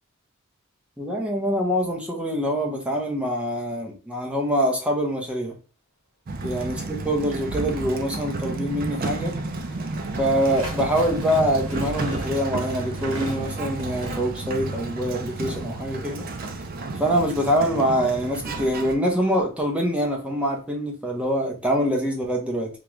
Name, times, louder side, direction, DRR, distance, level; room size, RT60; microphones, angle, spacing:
voice 1, 1.0-5.5 6.4-9.3 10.2-16.2 17.0-22.7, equal, 5° right, 0 dB, 0.7 m, -24 dB
Sliding door, 6.3-18.9, right 3 dB, 45° right, 0.4 m, -31 dB
sound 1, 8.6-15.1, equal, 75° right, 1.2 m, -40 dB
3.7 x 2.2 x 3.0 m, 0.34 s
head